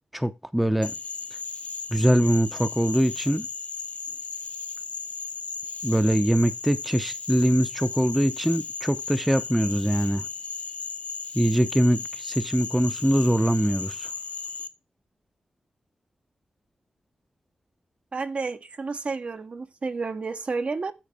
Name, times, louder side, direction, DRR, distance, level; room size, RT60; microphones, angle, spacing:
voice 1, 0.1-0.9 1.9-3.5 5.8-10.2 11.3-14.1, equal, 5° right, 0.6 m, -23 dB
Frog, 0.8-14.7, left 5 dB, 60° left, 0.7 m, -35 dB
voice 2, 18.1-20.9, right 4 dB, 55° right, 1.0 m, -31 dB
8.9 x 4.3 x 5.3 m
cardioid pair, 75°, 3 cm